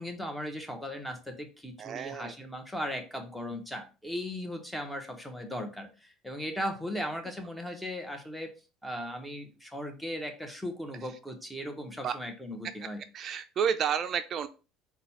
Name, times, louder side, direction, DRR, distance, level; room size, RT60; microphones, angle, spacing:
voice 1, 0.0-8.5 8.8-13.0, equal, 5° left, 4 dB, 1.0 m, -37 dB
voice 2, 1.8-2.3 12.0-12.1 13.1-14.5, right 7 dB, 50° right, 9 dB, 0.3 m, -30 dB
3.9 x 2.3 x 4.2 m, 0.33 s
supercardioid pair, 80°, 0 cm